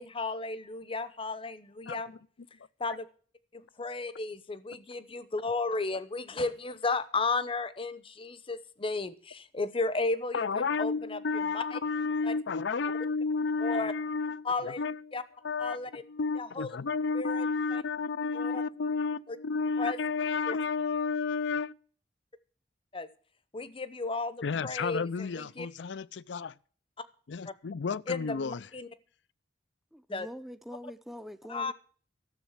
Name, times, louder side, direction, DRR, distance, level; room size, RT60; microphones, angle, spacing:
voice 1, 0.0-2.1 2.8-3.1 3.5-11.8 12.2-12.3 13.6-13.9 14.4-14.8 15.1-15.2 15.6-16.0 16.4-16.7 17.1-17.5 17.7-17.8 18.3-18.6 19.8-20.0 20.5-20.6 22.9-23.1 23.5-25.7 27.5-27.6 28.1-28.9 30.1-30.3 31.5-31.7, left 3 dB, 30° left, 0.8 m, -34 dB
voice 2, 10.3-15.2 15.4-15.8 16.0-21.7 24.4-26.5 27.3-28.7, left 4 dB, 75° left, 0.5 m, -32 dB
voice 3, 29.9-31.7, equal, ahead, 0.5 m, -44 dB
13.5 x 7.3 x 7.3 m
head